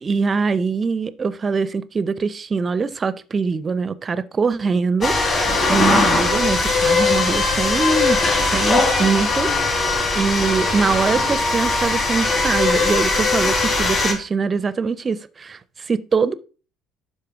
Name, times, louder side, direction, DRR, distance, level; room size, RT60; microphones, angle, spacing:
voice 1, 0.0-8.2 8.5-9.8 10.1-16.3, right 5 dB, 30° right, 0.6 m, -23 dB
sound 1, 5.0-14.1, left 3 dB, 40° left, 3.5 m, -20 dB
11.5 x 4.3 x 3.6 m
figure-of-eight pair, 55°, 0 cm